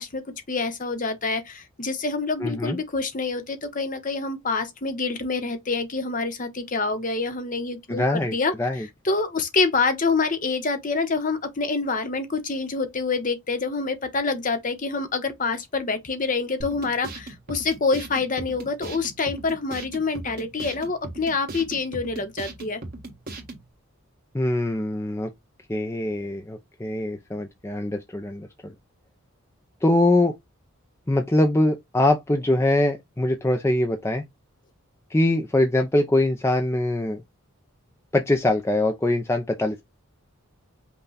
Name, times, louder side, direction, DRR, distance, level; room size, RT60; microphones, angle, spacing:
voice 1, 0.0-8.5 9.0-22.8, left 4 dB, 35° left, 0.9 m, -26 dB
voice 2, 2.4-2.8 7.9-8.9 24.3-25.3 25.7-28.7 29.8-30.3 31.1-34.2 35.1-37.2 38.1-39.8, left 1 dB, 10° left, 0.5 m, -23 dB
sound 1, 16.6-23.6, right 2 dB, 45° right, 1.5 m, -38 dB
5.6 x 2.3 x 3.9 m
head